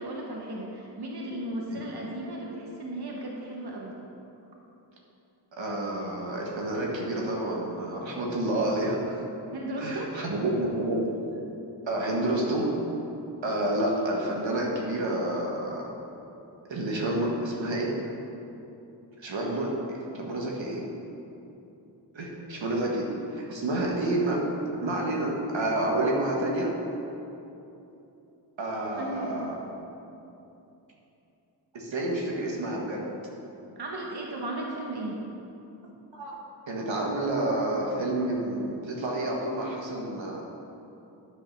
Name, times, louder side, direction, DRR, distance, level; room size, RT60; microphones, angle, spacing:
voice 1, 0.0-3.9 9.5-10.1 29.0-29.5 33.8-35.2, right 1 dB, 60° right, -2 dB, 1.3 m, -35 dB
voice 2, 5.6-9.2 9.8-11.1 11.9-12.7 13.4-15.8 16.7-17.9 19.2-20.8 22.1-24.4 24.8-26.7 28.6-29.5 31.7-33.1 36.1-36.4 36.7-40.4, right 1 dB, 85° right, -2 dB, 1.6 m, -29 dB
10.0 x 5.6 x 5.9 m, 2.9 s
wide cardioid pair, 60°, 44 cm